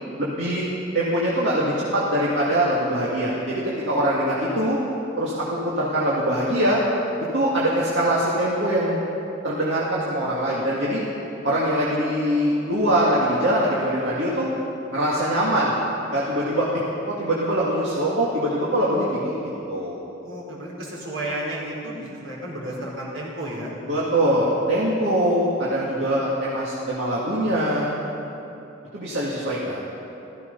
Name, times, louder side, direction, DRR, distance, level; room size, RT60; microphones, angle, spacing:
voice 1, 0.2-4.8 5.2-6.8 7.3-9.0 9.4-11.0 11.4-14.5 14.9-15.7 16.1-16.7 17.1-19.3 19.7-20.0 23.9-28.0 28.9-29.8, right 1 dB, 65° right, -6 dB, 2.1 m, -23 dB
voice 2, 20.2-23.7, right 1 dB, 85° right, -5 dB, 4.4 m, -32 dB
16.0 x 14.5 x 5.5 m, 2.9 s
head